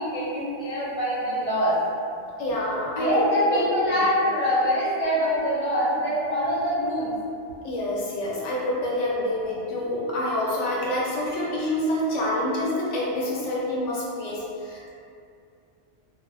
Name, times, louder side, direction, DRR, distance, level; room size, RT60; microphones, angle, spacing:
voice 1, 0.0-1.8 2.9-7.1, equal, 35° left, -9 dB, 0.6 m, -24 dB
voice 2, 2.4-3.2 3.5-4.3 7.6-14.9, left 1 dB, 80° left, -5 dB, 0.9 m, -27 dB
2.1 x 2.0 x 3.1 m, 2.5 s
omnidirectional pair, 1.2 m